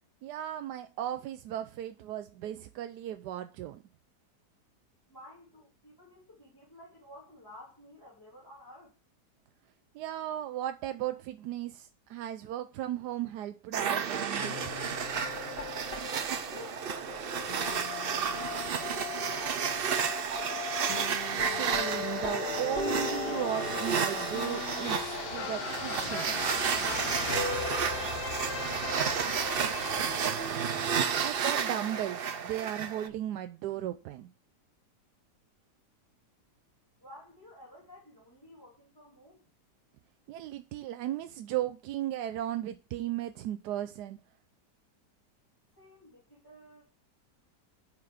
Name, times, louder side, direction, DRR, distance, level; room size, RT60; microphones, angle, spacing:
voice 1, 0.2-3.8 9.9-14.7 21.4-26.4 31.2-34.3 40.3-44.2, right 12 dB, 75° right, 1.1 m, -36 dB
voice 2, 5.1-8.9 16.4-20.6 27.6-29.0 29.3-30.1 37.0-39.4 45.7-46.8, left 1 dB, 10° left, 3.2 m, -53 dB
sound 1, 13.7-33.1, right 7 dB, 60° right, 0.6 m, -32 dB
sound 2, 14.4-31.5, left 7 dB, 65° left, 1.3 m, -40 dB
sound 3, 14.5-19.0 19.5-19.6 20.0-20.5 21.0-25.6, left 8 dB, 40° left, 1.0 m, -40 dB
9.6 x 4.7 x 4.9 m
omnidirectional pair, 1.8 m